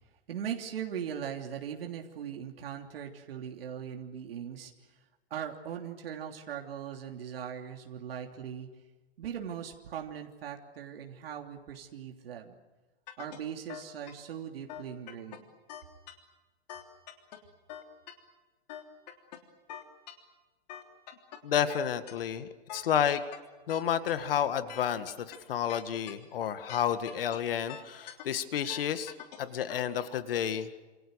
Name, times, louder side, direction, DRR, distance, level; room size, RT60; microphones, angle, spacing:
voice 1, 0.3-4.9 5.3-8.7 9.2-12.6 13.2-15.4, right 8 dB, 60° right, 2 dB, 3.2 m, -40 dB
sound 1, 13.1-13.4 13.7-14.1 14.7-15.4 15.7-16.1 16.7-17.4 17.7-18.1 18.7-19.4 19.7-20.1 20.7-21.4 21.7-22.1 22.7-23.4 23.7-24.1 24.7-25.4 25.7-26.1 26.7-27.4 27.7-28.2 28.7-29.4 29.7-29.8, left 11 dB, 40° left, 3.3 m, -43 dB
voice 2, 21.4-23.2 23.7-29.1 29.4-30.7, left 9 dB, 55° left, 10 dB, 2.1 m, -30 dB
29.5 x 28.0 x 6.5 m, 1.2 s
hypercardioid pair, 175°, 33 cm